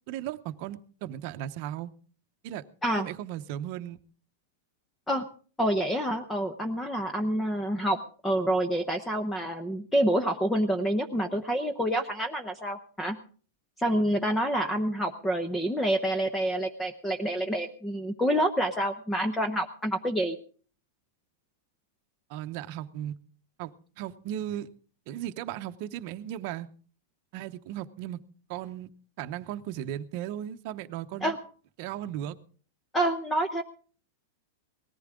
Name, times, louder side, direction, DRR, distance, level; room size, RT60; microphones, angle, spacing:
voice 1, 0.1-1.9 2.4-2.6 3.0-4.0 22.3-23.2 23.6-24.7 25.1-26.7 27.3-28.2 28.5-28.9 29.2-31.3 31.8-32.4, right 11 dB, 45° right, 9 dB, 0.9 m, -36 dB
voice 2, 5.6-13.2 13.8-20.4 31.2-31.4 32.9-33.6, right 1 dB, 5° left, 7 dB, 0.8 m, -27 dB
19.0 x 14.0 x 3.7 m, 0.41 s
supercardioid pair, 160°, 0 cm